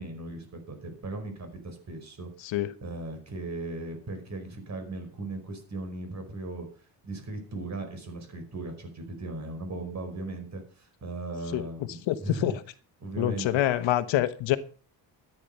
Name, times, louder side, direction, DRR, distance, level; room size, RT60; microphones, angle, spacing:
voice 1, 0.0-6.7 7.0-12.5 13.0-13.6, right 2 dB, 35° right, 5.0 m, -38 dB
voice 2, 12.1-12.5 13.2-14.6, left 13 dB, 90° left, 1.2 m, -26 dB
13.5 x 9.6 x 5.5 m
cardioid pair, 135°, 44 cm